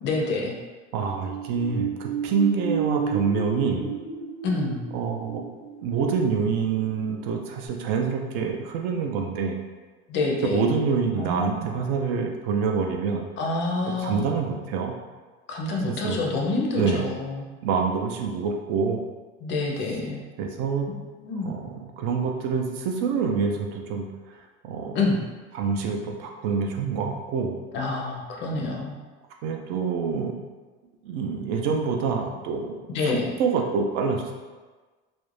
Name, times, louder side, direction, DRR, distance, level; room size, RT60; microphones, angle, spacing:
voice 1, 0.0-0.6 4.4-4.8 10.1-10.7 11.2-11.7 13.4-14.3 15.5-17.5 19.4-20.2 21.2-21.5 24.9-25.3 27.7-28.9 32.9-33.3, left 3 dB, 40° left, -1 dB, 0.4 m, -27 dB
voice 2, 0.9-3.9 4.9-5.4 5.8-9.6 10.4-13.2 14.0-15.0 15.9-16.2 16.7-17.0 17.6-19.0 20.4-20.9 21.4-24.1 24.6-25.0 25.5-27.5 29.4-30.4 31.0-34.3, right 5 dB, 75° right, 2 dB, 0.5 m, -26 dB
sound 1, 1.0-7.3 7.7-7.8, right 6 dB, 45° right, 0.8 m, -32 dB
2.4 x 2.1 x 3.0 m, 1.3 s
cardioid pair, 150°, 31 cm